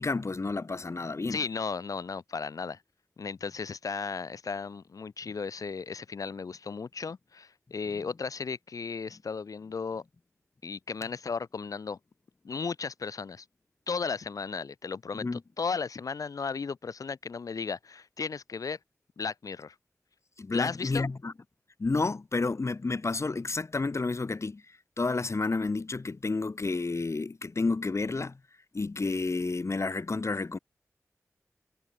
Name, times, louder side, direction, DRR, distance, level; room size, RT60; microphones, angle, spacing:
voice 1, 0.0-1.4 7.9-8.0 15.1-15.4 20.4-21.3 21.8-24.6 25.0-28.4 28.7-30.6, left 3 dB, 55° left, 2.0 m, -30 dB
voice 2, 1.3-2.8 3.2-10.0 10.6-12.0 12.4-13.4 13.9-15.3 15.6-18.8 19.2-19.7 20.5-21.1, left 5 dB, 85° left, 2.7 m, -35 dB
cardioid pair, 45°, 6 cm